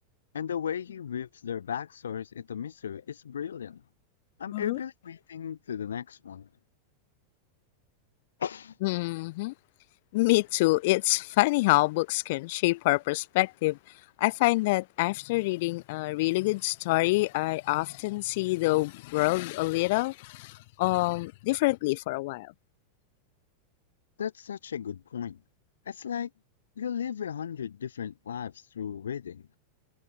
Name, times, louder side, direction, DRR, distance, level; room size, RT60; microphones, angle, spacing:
voice 1, 0.3-3.8 4.4-6.5 8.4-8.8 24.2-25.4 25.9-26.3 26.8-29.4, left 8 dB, 65° left, 3.6 m, -35 dB
voice 2, 8.8-9.5 10.1-13.8 14.2-22.5, left 22 dB, 50° left, 7.5 m, -26 dB
figure-of-eight pair, 90°, 0 cm